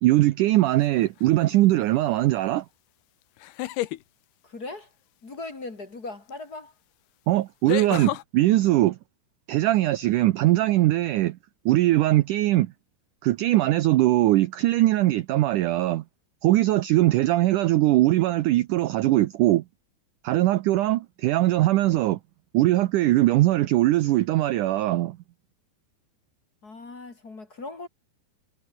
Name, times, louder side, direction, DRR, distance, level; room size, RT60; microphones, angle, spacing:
voice 1, 0.0-2.7 7.3-9.0 9.5-11.4 11.7-12.7 13.2-16.0 16.4-19.6 20.2-22.2 22.5-25.2, right 16 dB, 80° right, 1.8 m, -21 dB
sound 1, 0.8-1.2 3.4-4.0 6.3-6.4 7.7-8.2, left 16 dB, 85° left, 3.0 m, -30 dB
voice 2, 4.4-4.9 5.2-6.7 26.6-27.9, left 3 dB, 30° left, 2.6 m, -39 dB
omnidirectional pair, 4.5 m